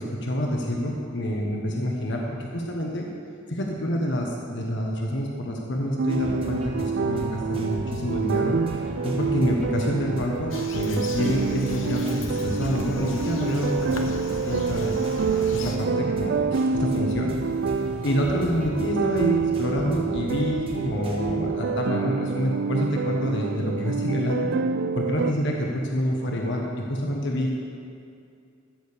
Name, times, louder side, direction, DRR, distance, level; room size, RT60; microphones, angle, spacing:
voice 1, 0.0-3.1 3.5-14.9 15.5-17.3 18.0-24.5 24.9-27.5, equal, 65° left, 0 dB, 1.3 m, -27 dB
sound 1, 6.0-25.3, right 5 dB, 60° right, 0.3 m, -27 dB
sound 2, 6.1-21.3, equal, 30° right, 1.5 m, -37 dB
Bird vocalization bird call bird song, 10.5-15.8, left 3 dB, 80° left, 1.0 m, -40 dB
14.0 x 6.5 x 6.8 m, 2.4 s
head